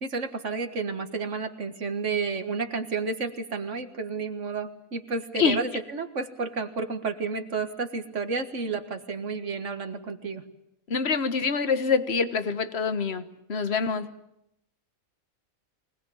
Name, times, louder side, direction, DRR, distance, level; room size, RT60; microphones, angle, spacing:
voice 1, 0.0-10.4, right 4 dB, 55° right, 8 dB, 1.9 m, -31 dB
voice 2, 10.9-13.2 13.5-14.1, left 5 dB, 50° left, 11 dB, 1.5 m, -25 dB
24.0 x 19.0 x 8.6 m, 0.81 s
omnidirectional pair, 1.5 m